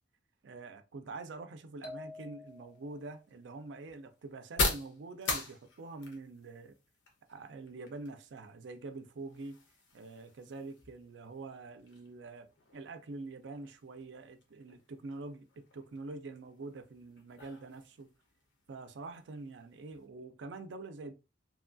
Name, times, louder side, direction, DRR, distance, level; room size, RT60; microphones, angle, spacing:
voice 1, 0.4-6.7 7.3-9.6 9.9-18.1 18.7-21.1, right 3 dB, 90° right, 0.4 m, -45 dB
sound 1, 1.8-3.0, left 3 dB, 45° left, 0.5 m, -47 dB
sound 2, 2.5-20.1, left 3 dB, 85° left, 0.9 m, -43 dB
2.9 x 2.3 x 2.5 m
head